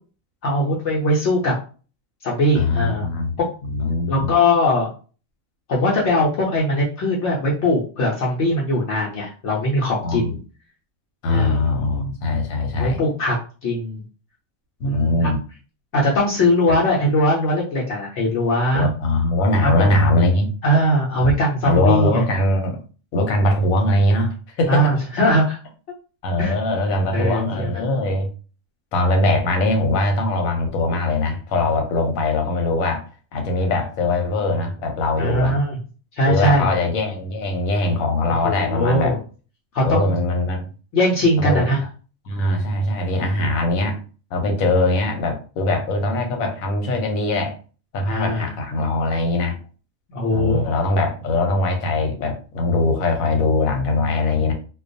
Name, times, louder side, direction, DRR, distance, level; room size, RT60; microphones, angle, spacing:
voice 1, 0.4-1.5 2.2-3.1 3.4-3.6 4.1-4.9 5.7-10.4 11.3-11.7 12.8-13.4 13.6-14.0 14.9-15.4 15.9-18.9 19.6-19.9 20.6-22.2 24.7-25.6 26.4-26.5 27.1-28.0 35.2-35.8 36.2-36.7 38.3-39.2 39.7-40.1 40.9-41.8 48.1-48.5 50.1-50.6, left 1 dB, 65° left, 0.8 m, -20 dB
voice 2, 2.5-3.4 3.6-4.3 10.0-10.3 11.2-13.0 14.8-15.4 18.7-20.5 21.2-21.3 21.6-22.8 23.1-24.9 26.2-28.3 28.9-33.0 33.3-35.6 36.3-39.2 39.8-40.7 41.4-41.6 42.3-44.0 44.3-47.5 47.9-49.6 50.3-54.5, left 2 dB, 85° left, 1.1 m, -21 dB
2.3 x 2.2 x 2.5 m
omnidirectional pair, 1.4 m